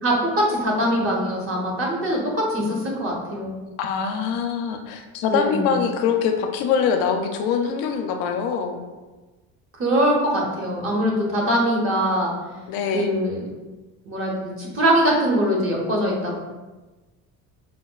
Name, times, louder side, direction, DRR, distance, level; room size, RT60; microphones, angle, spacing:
voice 1, 0.0-3.5 5.3-5.8 9.8-12.3 12.9-13.4 14.1-16.3, equal, 35° right, -2 dB, 1.0 m, -22 dB
voice 2, 3.8-8.8 12.7-13.2, left 6 dB, 80° left, 5 dB, 0.5 m, -24 dB
5.1 x 2.1 x 2.3 m, 1.2 s
cardioid pair, 105°, 35 cm